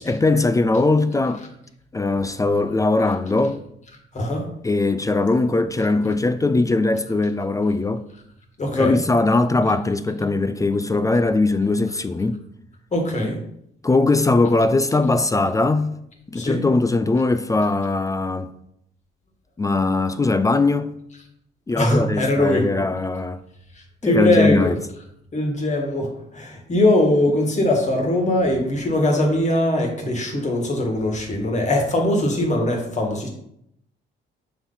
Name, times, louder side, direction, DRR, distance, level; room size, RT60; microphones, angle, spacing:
voice 1, 0.0-1.4 1.9-3.6 4.6-8.1 8.7-12.4 13.8-16.0 16.3-18.5 19.6-20.9 21.7-23.4 24.0-24.8, left 3 dB, 15° left, 0.4 m, -20 dB
voice 2, 8.6-9.0 12.9-13.4 16.3-16.6 21.8-22.7 24.0-24.7 25.3-33.3, left 1 dB, 35° left, 1.8 m, -21 dB
6.6 x 4.1 x 4.0 m
cardioid pair, 90°, 20 cm